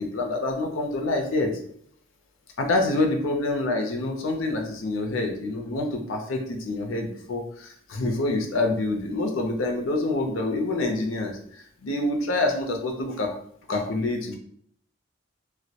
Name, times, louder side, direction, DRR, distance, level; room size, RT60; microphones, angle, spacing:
voice 1, 0.0-1.5 2.6-11.4 11.8-13.3 13.7-14.4, left 2 dB, 80° left, 3 dB, 0.5 m, -26 dB
2.2 x 2.0 x 2.7 m, 0.64 s
head